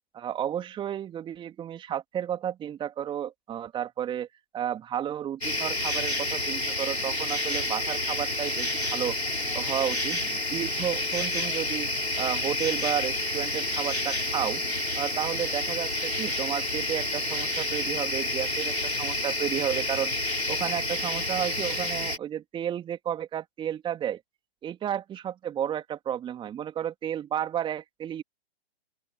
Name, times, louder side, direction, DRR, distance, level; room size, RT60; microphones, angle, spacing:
voice 1, 0.1-4.3 4.5-9.2 9.5-11.9 12.2-14.6 15.0-20.1 20.5-24.2 24.6-28.2, right 10 dB, 15° right, 3.4 m, -32 dB
sound 1, 5.4-22.2, left 2 dB, 85° left, 5.1 m, -29 dB
open air
figure-of-eight pair, 120°, 31 cm